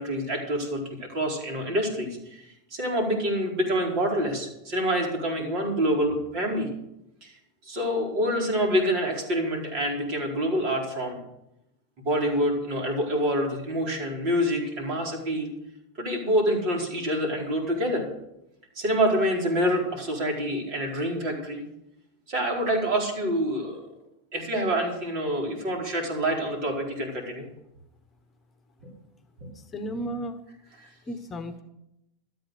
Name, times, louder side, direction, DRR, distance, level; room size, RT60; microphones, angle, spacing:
voice 1, 0.0-6.7 7.2-7.3 7.6-11.2 12.0-15.5 16.0-18.0 18.7-21.6 22.3-23.9 24.3-27.5 28.8-28.9 29.4-29.5 30.8-30.9, equal, 55° right, 0 dB, 4.6 m, -27 dB
voice 2, 29.5-30.4 31.1-31.6, equal, 25° left, 9 dB, 1.2 m, -34 dB
13.0 x 8.6 x 6.7 m, 0.85 s
hypercardioid pair, 95°, 0 cm